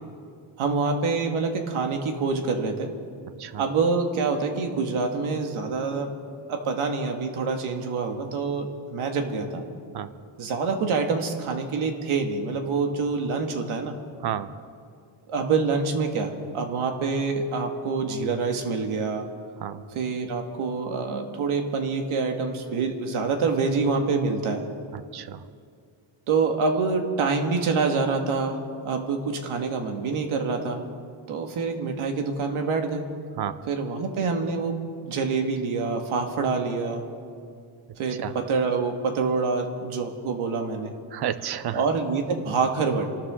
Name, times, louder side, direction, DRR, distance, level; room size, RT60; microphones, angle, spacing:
voice 1, 0.6-2.9 3.6-6.1 6.5-9.6 10.4-14.0 15.3-19.3 19.9-24.6 26.3-28.6 28.8-30.8 31.3-33.1 33.7-34.8 35.0-37.0 38.0-40.9 41.7-43.0, right 4 dB, 80° right, 4 dB, 2.0 m, -26 dB
voice 2, 24.9-25.4 33.4-33.6 38.2-38.3 41.1-41.8, right 10 dB, 50° right, 13 dB, 0.8 m, -31 dB
27.0 x 13.0 x 3.8 m, 2.3 s
cardioid pair, 120°, 49 cm